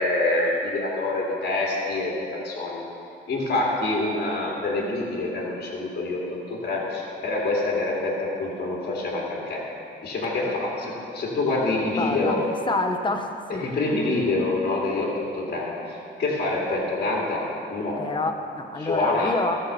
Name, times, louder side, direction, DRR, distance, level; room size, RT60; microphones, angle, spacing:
voice 1, 0.0-2.8 3.3-6.2 6.5-8.1 8.4-9.6 10.0-12.4 13.6-15.7 16.2-17.4 17.7-17.9 18.8-19.3, left 2 dB, 55° left, -3 dB, 2.6 m, -26 dB
voice 2, 11.9-13.6 18.0-19.6, left 2 dB, 25° left, 5 dB, 1.0 m, -28 dB
14.5 x 5.5 x 6.8 m, 2.6 s
cardioid pair, 90°, 20 cm